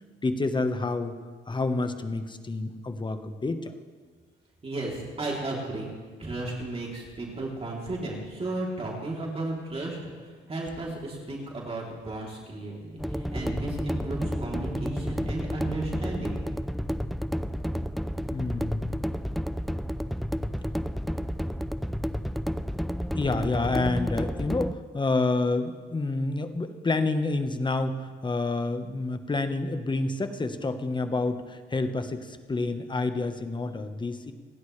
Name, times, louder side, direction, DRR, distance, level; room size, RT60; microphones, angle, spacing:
voice 1, 0.2-1.1 1.5-3.7 18.3-19.1 23.1-34.3, left 3 dB, 25° left, 8 dB, 1.2 m, -28 dB
voice 2, 4.6-5.9 6.2-16.4, right 2 dB, 30° right, -3 dB, 3.3 m, -34 dB
sound 1, 13.0-24.7, equal, ahead, 0.4 m, -31 dB
29.5 x 10.5 x 3.3 m, 1.5 s
cardioid pair, 90°, 20 cm